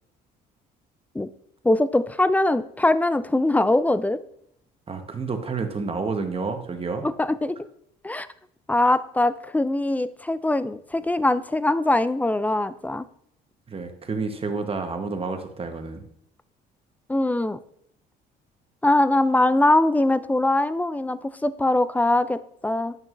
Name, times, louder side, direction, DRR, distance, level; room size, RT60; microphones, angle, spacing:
voice 1, 1.6-4.2 7.0-7.6 8.0-8.3 8.7-13.1 17.1-17.6 18.8-22.9, left 2 dB, 10° left, 15 dB, 0.3 m, -22 dB
voice 2, 4.9-7.1 13.7-16.0, right 4 dB, 30° right, 6 dB, 1.1 m, -29 dB
9.0 x 6.1 x 2.6 m, 0.71 s
supercardioid pair, 70°, 20 cm